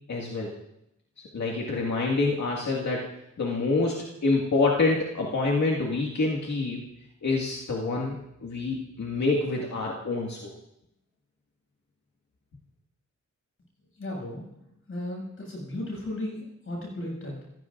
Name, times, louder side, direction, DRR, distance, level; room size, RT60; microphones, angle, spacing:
voice 1, 0.1-0.5 1.3-3.1 3.4-6.8 7.2-10.5, left 3 dB, 70° left, -3 dB, 2.2 m, -27 dB
voice 2, 13.9-14.4 14.9-17.4, left 1 dB, 45° left, -1 dB, 7.4 m, -35 dB
27.5 x 16.5 x 2.6 m, 0.82 s
wide cardioid pair, 140°, 29 cm